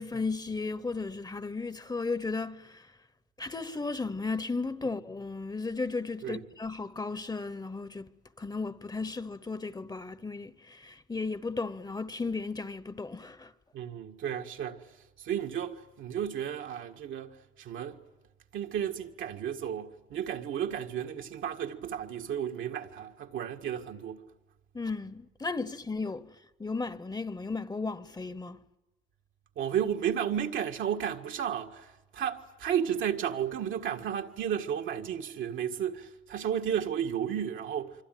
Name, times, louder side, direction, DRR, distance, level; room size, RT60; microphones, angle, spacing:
voice 1, 0.0-2.9 3.4-8.1 8.4-13.5 24.7-26.3 26.6-28.6, left 3 dB, 20° left, 1.0 m, -35 dB
voice 2, 13.7-14.8 15.2-18.0 18.5-24.2 29.5-37.9, right 9 dB, 75° right, 1.8 m, -33 dB
25.5 x 25.0 x 9.2 m
cardioid pair, 90°, 20 cm